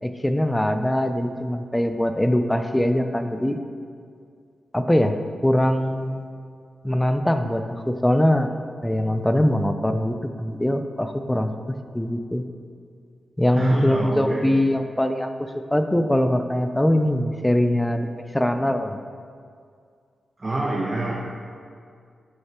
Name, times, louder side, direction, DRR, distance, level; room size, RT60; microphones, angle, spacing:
voice 1, 0.0-3.6 4.7-5.2 5.4-6.3 6.8-8.5 8.8-11.5 11.9-12.4 13.4-15.3 15.7-19.0, left 1 dB, 10° left, 7 dB, 0.5 m, -22 dB
voice 2, 13.5-14.5 20.4-21.1, right 2 dB, 30° right, -3 dB, 0.9 m, -26 dB
8.9 x 6.5 x 3.0 m, 2.2 s
cardioid pair, 90°, 0 cm